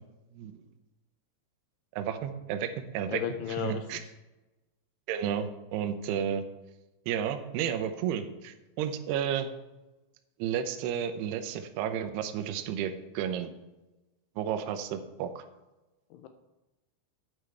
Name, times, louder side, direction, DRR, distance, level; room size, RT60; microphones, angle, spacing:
voice 1, 2.0-3.2 3.6-4.0 5.1-6.4 7.1-9.5 10.4-13.5 14.4-15.4, right 9 dB, 80° right, 7 dB, 2.6 m, -32 dB
voice 2, 3.1-3.8 16.1-16.3, left 9 dB, 80° left, 7 dB, 2.4 m, -34 dB
13.0 x 8.8 x 3.4 m, 1.0 s
omnidirectional pair, 5.3 m